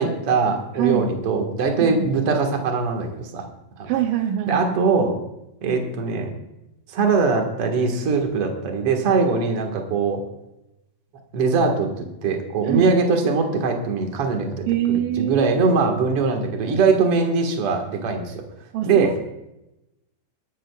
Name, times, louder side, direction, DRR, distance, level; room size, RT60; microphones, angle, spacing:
voice 1, 0.0-3.4 3.8-3.9 4.5-5.1 5.6-6.3 6.9-10.2 11.3-18.4 18.8-19.2, right 4 dB, 50° right, 2 dB, 2.3 m, -21 dB
voice 2, 0.8-1.1 1.8-2.1 3.8-4.8 12.6-12.9 14.7-15.5 18.7-19.3, right 11 dB, 80° right, 4 dB, 2.3 m, -24 dB
22.0 x 12.5 x 2.4 m, 0.91 s
omnidirectional pair, 4.0 m